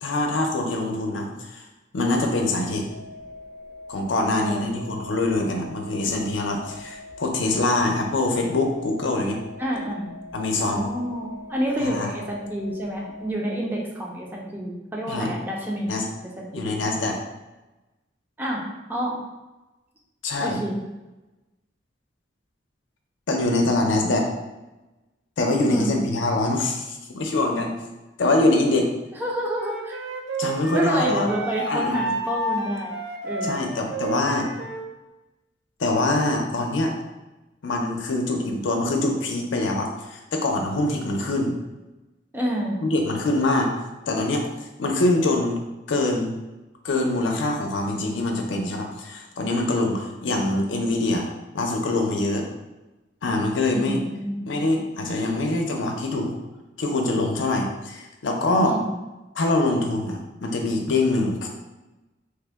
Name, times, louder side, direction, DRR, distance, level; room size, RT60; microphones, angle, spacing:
voice 1, 0.0-1.6 1.9-2.8 3.9-9.4 10.3-10.9 11.8-12.1 15.1-15.3 15.9-16.1 16.5-17.2 20.2-20.6 23.3-24.3 25.4-27.7 28.2-28.9 30.4-31.3 31.7-32.0 33.4-34.5 35.8-36.9 37.6-41.6 42.8-43.7 44.1-44.4 44.8-45.6 45.9-46.3 46.8-52.5 53.2-54.0 54.5-56.4 56.8-58.7 59.3-61.5, left 2 dB, 85° left, 2 dB, 0.5 m, -24 dB
sound 1, 2.9-13.3, left 2 dB, 40° right, 0.8 m, -43 dB
voice 2, 9.6-10.1 10.6-15.9 16.4-16.8 18.4-18.6 18.9-19.2 20.4-20.8 25.7-26.0 29.1-30.0 30.7-32.9 33.2-33.7 42.3-42.8 53.7-54.5 58.6-58.9, equal, 10° right, -2 dB, 0.4 m, -28 dB
Wind instrument woodwind instrument, 29.6-34.9, right 1 dB, 70° right, 0.4 m, -30 dB
3.3 x 2.1 x 3.4 m, 1.0 s
head